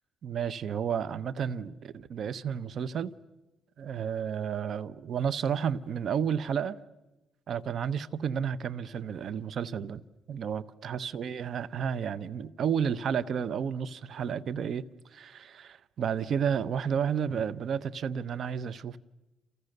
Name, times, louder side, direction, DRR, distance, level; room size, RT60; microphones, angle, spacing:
voice 1, 0.2-3.1 3.8-6.8 7.5-10.0 10.3-14.8 15.1-19.0, right 7 dB, 60° right, 1.0 m, -31 dB
29.0 x 28.5 x 6.7 m
cardioid pair, 90°, 0 cm